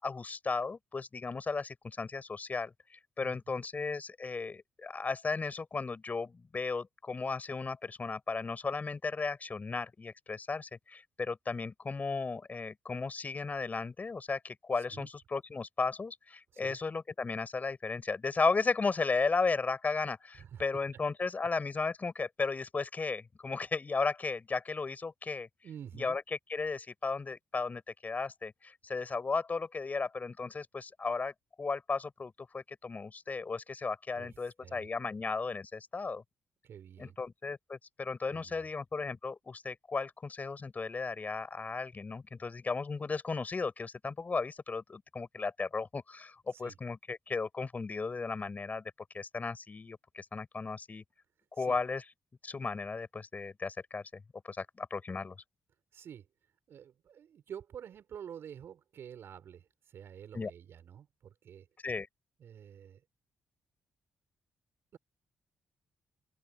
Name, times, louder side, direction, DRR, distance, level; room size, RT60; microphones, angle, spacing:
voice 1, 0.0-2.7 3.2-25.5 25.9-26.2 26.5-36.2 37.0-51.0 51.5-52.0 52.4-55.4 60.3-60.5 61.8-62.1, left 4 dB, 40° left, 6.1 m, -35 dB
voice 2, 3.2-3.6 14.7-15.1 16.5-16.8 20.3-20.6 25.6-26.2 34.2-34.9 36.6-37.2 38.3-38.7 46.5-46.8 51.6-51.8 55.9-56.3 56.7-61.7 62.4-63.0 64.9-65.0, right 8 dB, 65° right, 5.7 m, -49 dB
open air
supercardioid pair, 50°, 4 cm